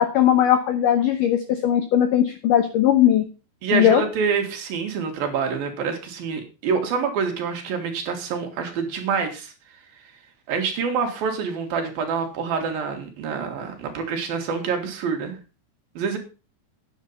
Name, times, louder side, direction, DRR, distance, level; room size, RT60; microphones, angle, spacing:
voice 1, 0.0-3.2 3.7-4.0, left 10 dB, 75° left, 9 dB, 1.9 m, -19 dB
voice 2, 3.6-9.5 10.5-15.4 16.0-16.2, right 5 dB, 65° right, 4 dB, 3.4 m, -26 dB
9.4 x 8.3 x 5.5 m, 0.32 s
omnidirectional pair, 5.0 m